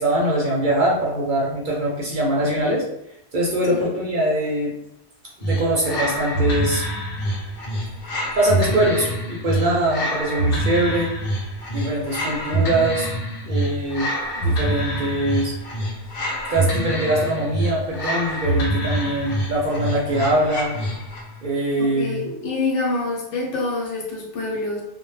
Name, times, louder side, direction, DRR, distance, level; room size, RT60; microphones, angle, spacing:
voice 1, 0.0-2.9 3.3-4.8 5.4-6.9 8.4-11.1 11.7-13.1 13.5-14.1 14.4-15.6 16.5-20.8 21.4-22.2, right 1 dB, 55° right, -3 dB, 0.6 m, -22 dB
sound 1, 5.4-21.3, right 1 dB, 60° left, 0.8 m, -26 dB
voice 2, 21.8-24.8, left 3 dB, 80° left, -1 dB, 1.0 m, -26 dB
2.1 x 2.1 x 3.0 m, 0.80 s
omnidirectional pair, 1.2 m